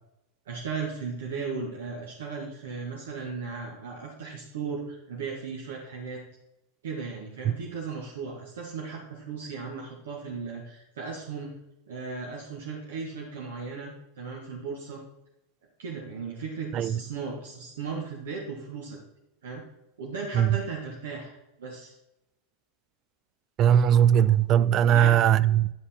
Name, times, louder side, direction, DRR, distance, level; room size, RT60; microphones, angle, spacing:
voice 1, 0.4-6.2 6.8-11.5 11.9-15.0 15.8-19.0 19.4-19.6 20.0-21.9 24.9-25.1, right 5 dB, 85° right, 1.5 m, -36 dB
voice 2, 23.6-25.7, right 9 dB, 40° right, 0.4 m, -20 dB
10.0 x 5.5 x 4.3 m
hypercardioid pair, 115°, 0 cm